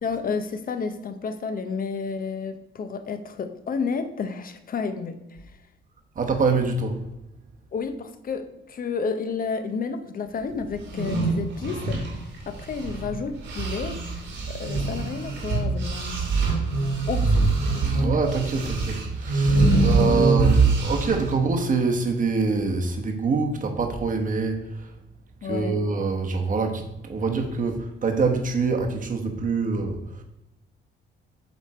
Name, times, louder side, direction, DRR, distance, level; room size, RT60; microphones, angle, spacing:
voice 1, 0.0-5.4 7.7-12.0 12.5-14.0 14.5-16.2 17.1-17.4 19.7-19.8 25.4-25.8, left 5 dB, 45° left, 9 dB, 0.8 m, -31 dB
voice 2, 6.1-7.0 18.0-24.9 25.4-30.2, right 4 dB, 40° right, 3 dB, 1.2 m, -25 dB
sound 1, 10.8-13.1 13.4-21.3, right 3 dB, 70° right, 2.1 m, -23 dB
8.0 x 3.5 x 4.3 m, 0.91 s
cardioid pair, 90°, 20 cm